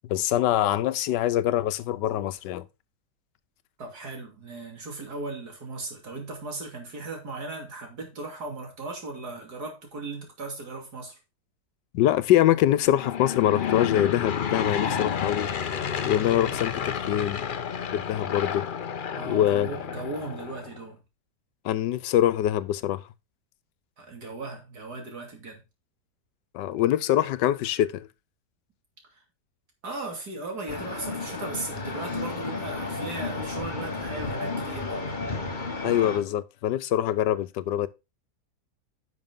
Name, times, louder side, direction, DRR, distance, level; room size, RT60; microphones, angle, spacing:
voice 1, 0.0-2.7 11.9-15.5 16.0-17.4 17.9-18.6 19.3-19.7 21.6-23.0 26.5-28.1 35.8-37.9, left 12 dB, 90° left, 1.3 m, -24 dB
voice 2, 3.8-11.2 19.1-21.0 24.0-25.6 29.8-35.1, right 3 dB, 65° right, 3.2 m, -37 dB
Aircraft / Engine, 12.8-20.8, left 7 dB, 60° left, 0.5 m, -30 dB
sound 1, 30.7-36.2, left 3 dB, 30° left, 1.2 m, -32 dB
11.0 x 6.1 x 3.7 m
omnidirectional pair, 1.8 m